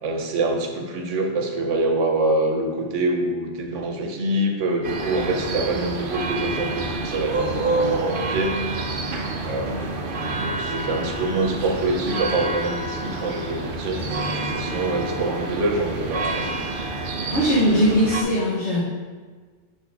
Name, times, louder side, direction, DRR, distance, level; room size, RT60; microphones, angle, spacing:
voice 1, 0.0-8.8 9.4-9.9 10.3-16.5, right 2 dB, 85° right, 3 dB, 1.1 m, -25 dB
sound 1, 4.8-18.2, right 3 dB, 55° right, 0.7 m, -28 dB
voice 2, 17.3-18.8, equal, 70° left, -8 dB, 1.5 m, -20 dB
6.9 x 4.2 x 3.5 m, 1.5 s
omnidirectional pair, 1.2 m